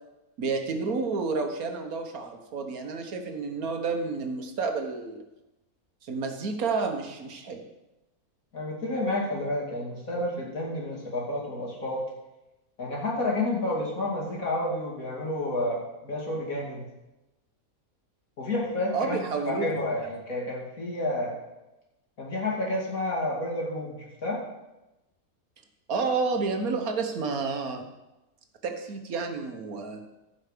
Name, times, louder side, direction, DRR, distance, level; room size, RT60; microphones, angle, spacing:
voice 1, 0.4-5.2 6.0-7.6 18.9-19.7 25.9-27.9 28.6-30.0, right 4 dB, 75° right, 4 dB, 1.6 m, -30 dB
voice 2, 8.5-12.0 12.8-16.9 18.4-21.3 22.2-24.4, left 1 dB, 65° left, -3 dB, 2.9 m, -30 dB
15.0 x 5.7 x 5.0 m, 0.99 s
omnidirectional pair, 1.6 m